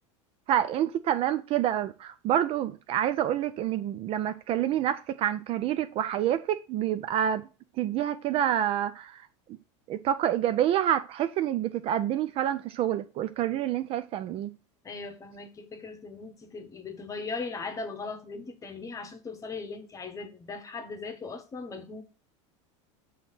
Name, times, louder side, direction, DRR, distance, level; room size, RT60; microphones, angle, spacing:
voice 1, 0.5-7.4 7.8-9.3 9.9-14.5, right 11 dB, 40° right, 0.3 m, -27 dB
voice 2, 14.8-22.0, left 4 dB, 20° left, 0.9 m, -39 dB
6.3 x 2.8 x 5.6 m
supercardioid pair, 125°, 15 cm